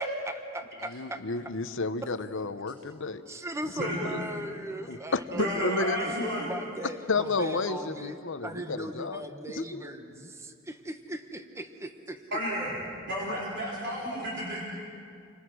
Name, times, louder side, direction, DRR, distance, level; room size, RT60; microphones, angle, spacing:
voice 1, 0.0-1.2 3.3-12.2 14.0-14.2, right 1 dB, 15° right, 7 dB, 1.1 m, -39 dB
voice 2, 0.9-3.2 3.8-4.2 4.9-6.0 7.1-9.2 9.6-9.8, left 3 dB, 65° left, 11 dB, 0.9 m, -31 dB
voice 3, 3.8-4.3 5.3-6.5 12.3-12.7 13.1-14.6, equal, 60° right, -6 dB, 4.3 m, -32 dB
29.5 x 25.5 x 6.3 m, 2.4 s
head